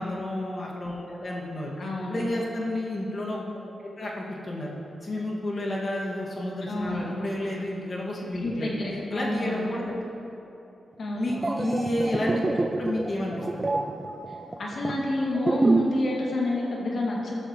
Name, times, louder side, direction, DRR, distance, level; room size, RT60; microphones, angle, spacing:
voice 1, 0.0-1.7 2.1-3.5 4.0-4.7 5.0-8.7 9.1-9.9 11.2-12.4 12.8-13.8, left 1 dB, 45° left, -3 dB, 2.1 m, -30 dB
voice 2, 1.8-2.2 6.6-7.1 8.4-9.6 11.0-11.3 14.3-17.4, left 1 dB, 65° left, -3 dB, 2.5 m, -29 dB
sound 1, 11.2-16.1 16.3-16.6, right 2 dB, 30° right, 0.7 m, -27 dB
13.0 x 12.5 x 3.2 m, 3.0 s
supercardioid pair, 45°, 0 cm